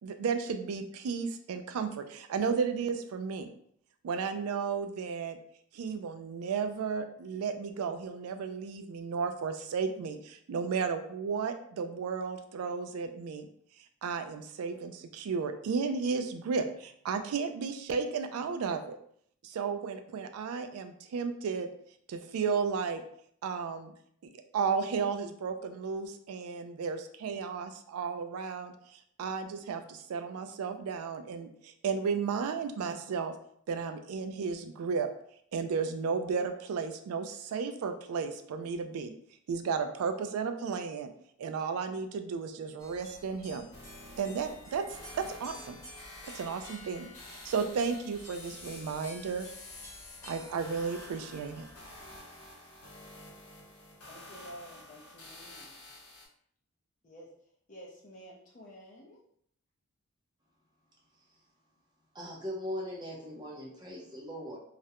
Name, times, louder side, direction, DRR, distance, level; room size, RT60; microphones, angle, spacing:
voice 1, 0.0-3.5 4.0-5.4 5.7-19.0 19.4-21.7 22.1-23.0 23.4-23.9 24.2-33.4 33.7-35.1 35.5-39.1 39.5-41.1 41.4-43.7 44.2-45.8 46.3-49.5 50.2-51.7, right 5 dB, 80° right, 7 dB, 0.3 m, -34 dB
sound 1, 42.8-52.2, left 1 dB, 15° left, 0.9 m, -52 dB
sound 2, 43.7-56.3, left 2 dB, 90° left, 0.8 m, -50 dB
voice 2, 54.0-55.8 57.0-59.2, equal, 35° left, -4 dB, 0.5 m, -51 dB
voice 3, 62.1-64.6, equal, 20° right, -3 dB, 0.5 m, -39 dB
2.4 x 2.1 x 2.8 m, 0.66 s
head